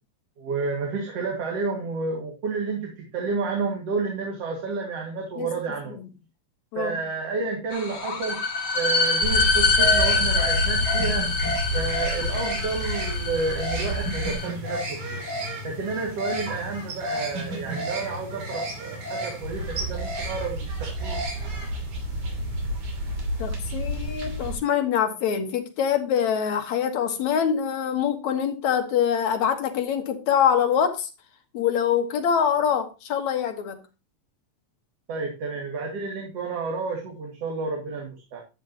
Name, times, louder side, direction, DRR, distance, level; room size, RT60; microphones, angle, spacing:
voice 1, 0.4-6.0 6.8-8.4 8.7-11.3 11.7-15.2 15.6-21.2 35.1-38.4, right 4 dB, 55° right, 3.2 m, -30 dB
sound 1, 7.7-14.5, left 3 dB, 40° left, 2.1 m, -25 dB
sound 2, 9.2-24.5, equal, 80° right, 4.4 m, -30 dB
voice 2, 23.4-31.1 31.5-33.8, left 8 dB, 75° left, 2.9 m, -24 dB
12.5 x 8.9 x 3.0 m
omnidirectional pair, 3.3 m